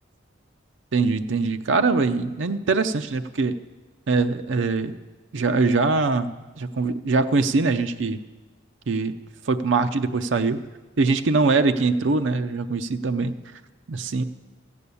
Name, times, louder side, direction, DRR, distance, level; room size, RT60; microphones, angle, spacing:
voice 1, 0.9-3.5 4.1-5.0 5.3-8.2 8.9-9.1 9.5-10.6 11.0-13.3 13.9-14.2, right 3 dB, 75° right, 8 dB, 0.5 m, -22 dB
14.5 x 8.3 x 6.9 m, 1.2 s
head